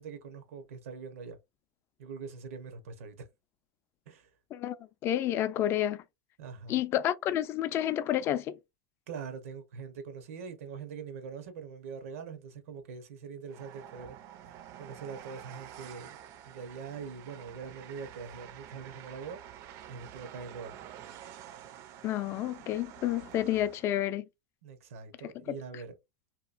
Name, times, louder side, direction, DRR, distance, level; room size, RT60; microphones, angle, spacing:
voice 1, 0.0-1.4 2.0-3.3 4.1-4.3 6.4-6.8 9.1-14.2 14.8-16.1 16.5-19.4 19.9-20.7 24.6-25.9, right 5 dB, 85° right, 0.9 m, -43 dB
voice 2, 5.0-6.0 6.7-8.6 22.0-24.2 25.2-25.3, left 12 dB, 35° left, 0.3 m, -30 dB
Train, 13.5-24.0, right 10 dB, 45° right, 0.5 m, -49 dB
2.9 x 2.3 x 2.4 m
supercardioid pair, 130°, 7 cm